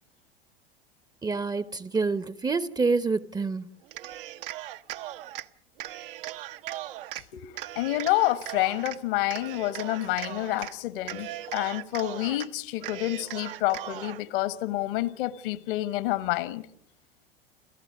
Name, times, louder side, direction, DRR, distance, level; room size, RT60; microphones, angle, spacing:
voice 1, 1.2-3.6, right 4 dB, 15° right, 0.8 m, -27 dB
Cheering, 3.8-5.5 5.8-7.2 7.6-9.0 9.3-10.7 11.0-12.5 12.8-14.2, right 14 dB, 60° right, 0.9 m, -38 dB
voice 2, 7.3-16.6, left 16 dB, 60° left, 1.4 m, -28 dB
30.0 x 14.5 x 6.3 m
figure-of-eight pair, 85°, 30 cm